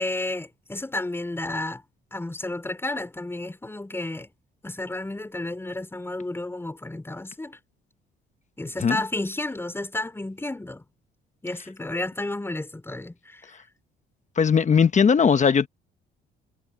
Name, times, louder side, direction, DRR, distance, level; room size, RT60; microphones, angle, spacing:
voice 1, 0.0-1.8 2.1-4.3 4.6-7.6 8.6-10.8 11.4-13.4, left 2 dB, 10° left, 5.0 m, -32 dB
voice 2, 14.4-15.7, left 6 dB, 35° left, 1.2 m, -19 dB
cardioid pair, 95°, 20 cm